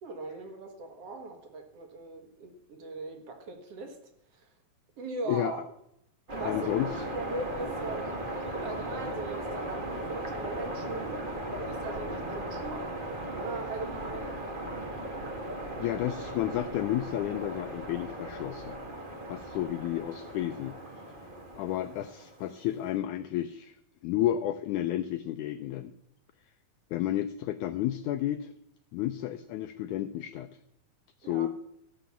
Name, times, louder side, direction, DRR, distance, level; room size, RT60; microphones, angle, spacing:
voice 1, 0.0-4.0 4.3-4.5 5.0-5.6 6.3-6.8 7.1-8.1 8.6-11.2 11.6-12.9 13.4-14.4 31.2-31.5, right 3 dB, 50° right, 5 dB, 2.2 m, -39 dB
sound 1, 6.3-22.6, right 1 dB, 30° right, 0.8 m, -37 dB
voice 2, 6.5-7.0 15.8-18.8 19.3-20.8 21.6-23.7 24.0-25.9 26.9-28.5 28.9-30.5 31.2-31.5, left 12 dB, 85° left, 10 dB, 1.7 m, -31 dB
14.5 x 5.8 x 7.0 m, 0.78 s
omnidirectional pair, 4.0 m